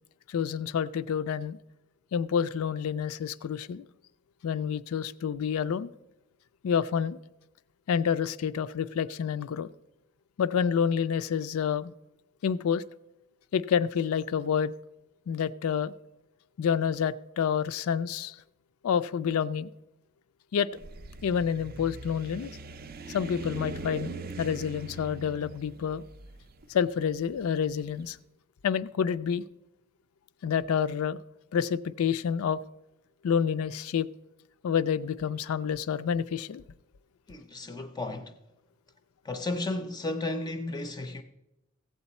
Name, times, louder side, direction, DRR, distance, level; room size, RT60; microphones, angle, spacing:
voice 1, 0.3-1.6 2.1-3.8 4.4-5.9 6.6-7.2 7.9-9.7 10.4-11.9 12.4-12.8 13.5-14.7 15.3-15.9 16.6-18.4 18.8-19.7 20.5-20.7 21.2-22.5 23.1-26.0 26.7-28.2 28.6-29.4 30.4-31.2 31.5-32.6 33.2-34.1 34.6-36.6, left 7 dB, 75° left, 0.4 m, -28 dB
sound 1, 20.7-27.9, right 2 dB, 45° right, 0.5 m, -42 dB
voice 2, 37.3-38.4 39.2-41.2, left 2 dB, 20° left, 0.5 m, -33 dB
15.0 x 8.0 x 4.2 m
head